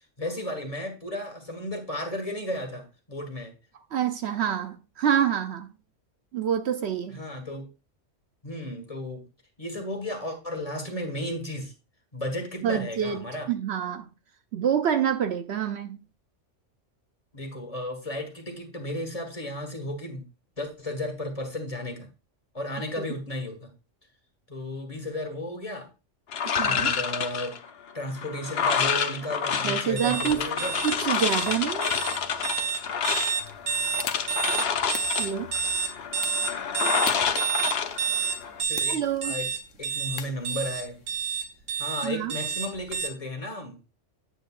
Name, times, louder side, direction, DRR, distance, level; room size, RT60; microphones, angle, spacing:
voice 1, 0.2-3.5 7.1-7.7 8.4-9.2 9.6-11.7 12.1-13.5 17.3-20.2 20.6-22.1 22.5-23.7 24.5-25.9 26.6-27.6 27.9-30.8 38.7-39.0 39.2-39.5 39.8-41.0 41.8-43.8, left 1 dB, 30° left, 1.6 m, -34 dB
voice 2, 3.9-5.7 6.3-7.2 12.6-14.1 14.5-16.0 23.0-23.1 26.4-26.9 29.6-30.5 30.8-31.9 35.2-35.5 38.9-39.3 42.0-42.3, right 9 dB, 65° right, 0.8 m, -27 dB
sound 1, 26.3-38.6, left 6 dB, 60° left, 0.9 m, -28 dB
sound 2, 30.0-43.1, right 6 dB, 85° right, 1.3 m, -29 dB
sound 3, 33.4-41.2, left 8 dB, 85° left, 1.1 m, -44 dB
9.0 x 7.8 x 2.4 m
omnidirectional pair, 1.3 m